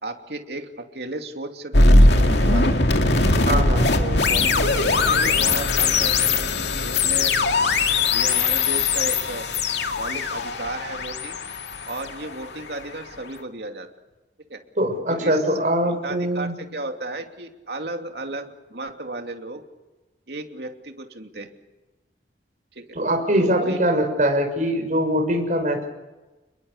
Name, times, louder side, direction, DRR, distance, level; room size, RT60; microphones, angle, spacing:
voice 1, 0.0-2.8 3.3-3.6 4.0-7.4 8.1-9.5 10.0-11.4 11.8-13.9 14.5-14.6 15.1-15.4 15.9-19.6 20.3-21.5 22.7-23.0 23.4-23.8, right 2 dB, 65° right, 4 dB, 2.8 m, -34 dB
sound 1, 1.7-12.8, left 3 dB, 75° left, 2.3 m, -20 dB
voice 2, 3.5-3.9 14.8-16.6 22.9-25.9, equal, 45° right, 4 dB, 6.2 m, -22 dB
29.5 x 22.0 x 6.8 m, 1.1 s
head